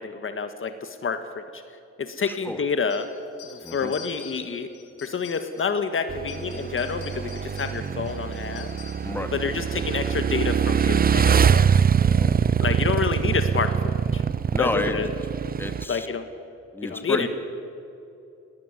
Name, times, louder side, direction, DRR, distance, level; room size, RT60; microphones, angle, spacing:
voice 1, 0.0-3.1 3.4-4.7 5.0-8.8 9.3-11.7 12.6-14.2 14.6-15.1 15.9-16.3 16.8-17.3, left 5 dB, 45° left, 8 dB, 1.6 m, -28 dB
voice 2, 2.2-2.6 3.6-3.9 9.0-9.3 12.0-12.4 14.5-15.0 15.6-16.1 16.7-17.3, left 1 dB, 5° left, 7 dB, 2.1 m, -30 dB
sound 1, 2.9-5.8 6.2-9.1, left 9 dB, 80° left, 7.3 m, -46 dB
Motorcycle / Engine, 6.1-15.9, right 7 dB, 30° right, 0.6 m, -23 dB
20.0 x 18.5 x 9.8 m, 2.7 s
cardioid pair, 90°, 30 cm